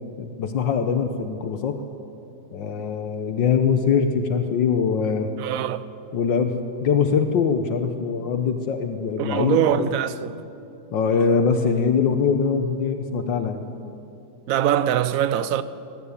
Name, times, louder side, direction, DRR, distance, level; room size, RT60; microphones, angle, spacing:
voice 1, 0.2-1.8 2.5-5.3 6.1-9.9 10.9-13.7, left 6 dB, 75° left, 1.6 m, -22 dB
voice 2, 5.4-5.9 9.2-10.4 14.5-15.6, right 10 dB, 60° right, 0.9 m, -23 dB
21.0 x 14.0 x 9.7 m
omnidirectional pair, 2.1 m